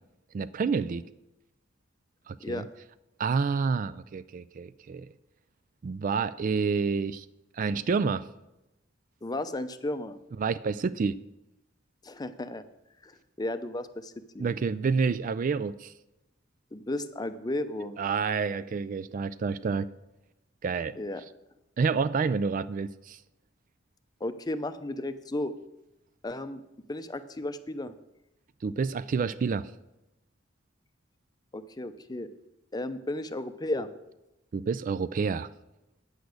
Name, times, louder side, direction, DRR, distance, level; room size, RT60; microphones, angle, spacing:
voice 1, 0.3-1.1 2.3-2.7 3.2-5.1 5.8-7.3 7.5-8.2 10.4-11.2 14.4-15.9 18.0-19.9 20.6-21.0 21.8-23.2 28.6-29.7 34.5-35.5, right 5 dB, 45° right, 16 dB, 0.3 m, -28 dB
voice 2, 9.2-10.2 12.0-12.7 13.0-14.5 16.7-18.0 21.0-21.2 24.2-25.5 26.2-26.6 26.9-27.9 31.5-32.3 32.7-33.9, left 1 dB, 20° left, 11 dB, 0.6 m, -34 dB
9.2 x 8.2 x 6.4 m, 0.93 s
head